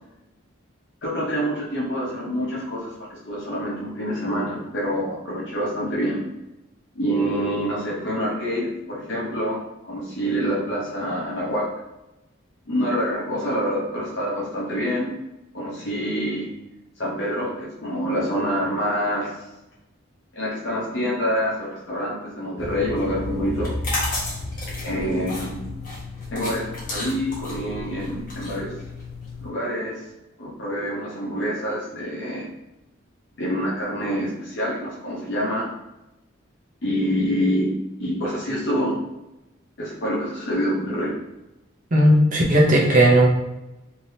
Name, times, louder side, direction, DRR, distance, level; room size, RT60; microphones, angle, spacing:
voice 1, 1.0-6.3 6.9-11.7 12.7-15.1 15.5-16.5 17.0-19.3 20.3-23.8 24.7-25.7 26.3-28.7 29.4-30.0 30.4-32.5 33.4-35.7 36.8-39.0 39.8-41.1, equal, 60° left, -6 dB, 0.8 m, -26 dB
sound 1, 22.6-29.5, left 3 dB, 85° left, 0.5 m, -34 dB
sound 2, 23.5-29.3, left 2 dB, 40° left, 1.1 m, -32 dB
voice 2, 41.9-43.3, right 1 dB, 40° right, -2 dB, 0.7 m, -16 dB
3.3 x 2.8 x 2.7 m, 0.98 s
head